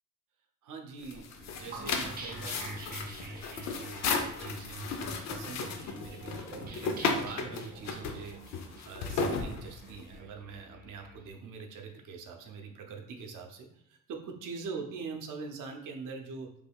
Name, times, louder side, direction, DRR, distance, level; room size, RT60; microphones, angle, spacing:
voice 1, 0.6-16.5, right 4 dB, 85° right, 3 dB, 0.6 m, -44 dB
sound 1, 1.0-10.1, left 4 dB, 60° left, 0.5 m, -35 dB
sound 2, 1.7-11.2, right 2 dB, 30° right, 0.4 m, -45 dB
3.3 x 2.3 x 3.4 m, 0.72 s
cardioid pair, 175°, 30 cm